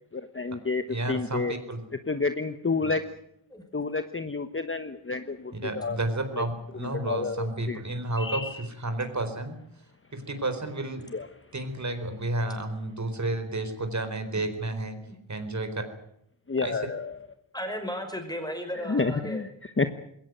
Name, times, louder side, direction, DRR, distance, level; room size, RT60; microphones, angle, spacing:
voice 1, 0.1-1.5 2.1-3.0 3.7-6.0 6.4-6.5 6.8-7.8 8.2-8.6 11.1-11.3 16.5-17.2 18.7-19.9, left 4 dB, 25° left, 9 dB, 1.2 m, -30 dB
voice 2, 0.9-1.8 2.8-2.9 5.5-9.6 10.1-11.1 11.5-15.0 15.3-15.8 16.6-16.8, right 2 dB, 35° right, 8 dB, 4.3 m, -31 dB
voice 3, 17.5-19.4, equal, 10° left, 6 dB, 5.6 m, -35 dB
21.5 x 17.5 x 9.3 m, 0.73 s
wide cardioid pair, 110°, 47 cm